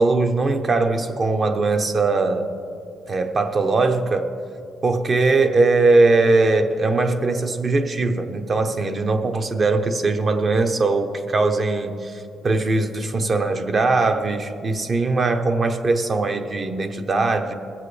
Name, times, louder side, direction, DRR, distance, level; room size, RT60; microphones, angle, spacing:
voice 1, 0.0-2.5 3.1-4.3 4.8-17.5, right 3 dB, 40° right, 6 dB, 0.9 m, -20 dB
19.0 x 7.4 x 3.3 m, 2.6 s
cardioid pair, 90°, 0 cm